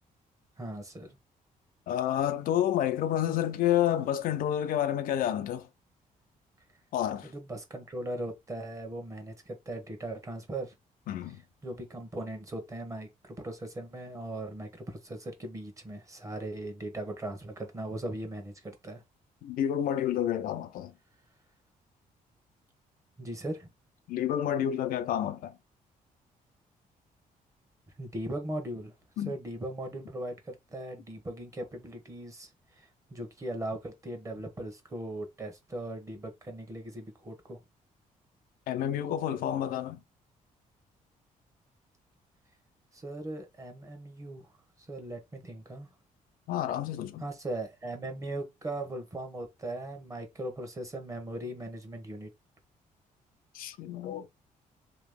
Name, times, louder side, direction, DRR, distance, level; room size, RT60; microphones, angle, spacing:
voice 1, 0.6-1.2 7.2-10.7 11.3-19.0 23.2-23.7 28.0-28.9 29.2-37.6 42.9-44.5 44.8-45.9 47.2-52.3, right 1 dB, 20° right, 1.0 m, -39 dB
voice 2, 1.9-5.7 6.9-7.3 11.1-11.4 19.4-20.9 24.1-25.6 29.2-29.3 38.7-40.0 46.5-47.2 53.5-54.3, left 11 dB, 85° left, 0.5 m, -29 dB
3.0 x 2.9 x 3.6 m
cardioid pair, 145°, 14 cm